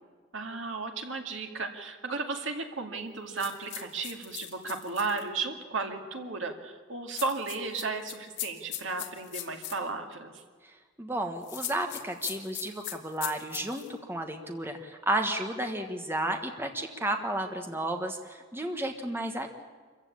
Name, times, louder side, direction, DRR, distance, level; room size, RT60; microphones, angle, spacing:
voice 1, 0.3-10.4, right 4 dB, 70° right, 4 dB, 2.3 m, -34 dB
sound 1, 3.4-5.2 7.1-9.8 11.4-13.9, left 12 dB, 60° left, 2.2 m, -39 dB
voice 2, 10.6-19.5, right 1 dB, 10° right, 4 dB, 1.4 m, -32 dB
27.0 x 15.0 x 8.7 m, 1.5 s
head